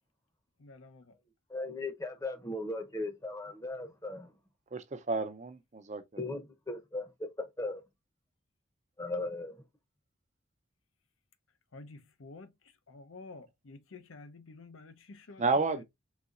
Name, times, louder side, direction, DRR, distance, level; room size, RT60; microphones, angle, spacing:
voice 1, 0.6-1.1 11.7-15.8, left 3 dB, 80° left, 0.7 m, -51 dB
voice 2, 1.5-4.3 6.2-7.3 7.6-7.8 9.0-9.6, left 2 dB, 15° left, 0.7 m, -37 dB
voice 3, 4.7-6.0 15.4-15.8, right 3 dB, 35° right, 0.5 m, -31 dB
4.1 x 3.9 x 2.4 m
head